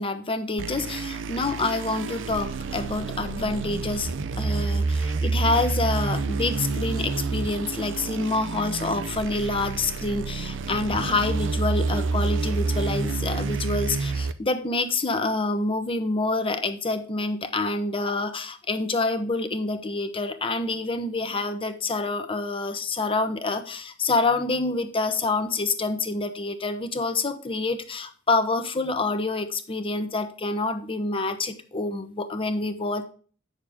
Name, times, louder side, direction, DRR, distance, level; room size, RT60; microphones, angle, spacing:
voice 1, 0.0-4.1 4.4-33.0, left 3 dB, 25° left, 8 dB, 0.8 m, -27 dB
sound 1, 0.6-14.3, right 4 dB, 65° right, 0.6 m, -28 dB
9.0 x 6.6 x 3.6 m, 0.42 s
head